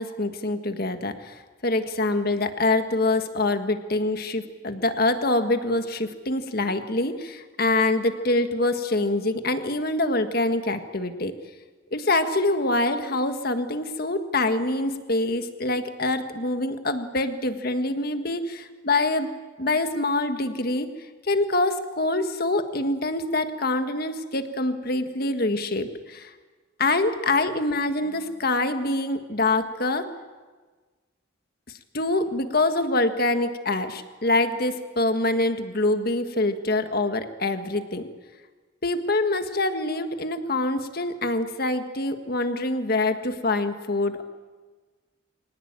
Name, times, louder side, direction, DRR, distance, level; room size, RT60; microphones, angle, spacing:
voice 1, 0.0-11.3 11.9-19.3 19.6-20.9 21.3-26.3 26.8-30.1 31.9-38.1 38.8-44.2, left 2 dB, 50° left, 8 dB, 1.6 m, -25 dB
24.0 x 18.0 x 9.0 m, 1.4 s
head